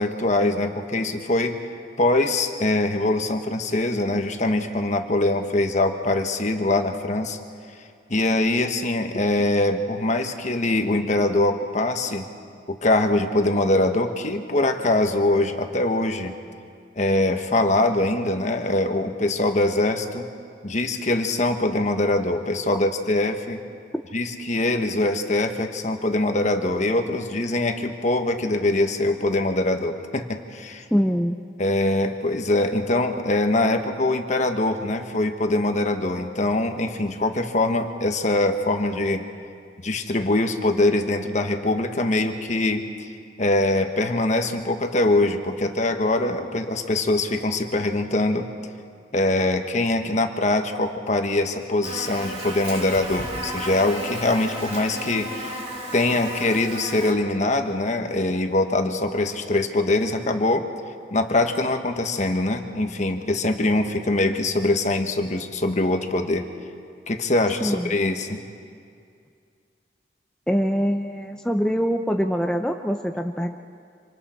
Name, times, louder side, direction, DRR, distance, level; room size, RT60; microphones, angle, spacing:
voice 1, 0.0-1.6 2.0-7.4 8.1-12.3 12.7-16.3 16.9-20.3 20.6-23.6 24.1-30.8 31.6-39.3 39.8-43.1 43.4-48.5 49.1-55.6 55.9-60.7 61.1-66.5 67.1-68.4, left 2 dB, 40° left, 5 dB, 1.4 m, -23 dB
voice 2, 30.9-31.3 67.6-67.9 70.5-73.5, equal, 5° left, 3 dB, 0.6 m, -23 dB
Buzz, 51.8-57.1, right 1 dB, 40° right, 3.1 m, -33 dB
27.0 x 26.0 x 4.5 m, 2.3 s
head